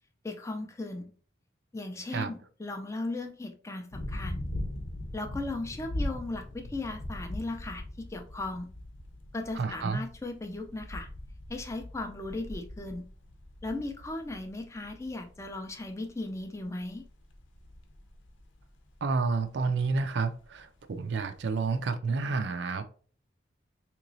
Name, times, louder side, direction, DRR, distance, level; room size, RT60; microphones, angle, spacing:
voice 1, 0.2-1.1 1.7-4.4 5.1-8.7 9.3-11.1 11.5-13.1 13.6-17.0, left 2 dB, 15° left, 0.3 m, -37 dB
sound 1, 3.9-21.9, left 1 dB, 85° left, 0.7 m, -41 dB
voice 2, 9.6-10.0 19.0-22.8, right 4 dB, 65° right, 0.4 m, -30 dB
3.7 x 3.0 x 2.6 m
head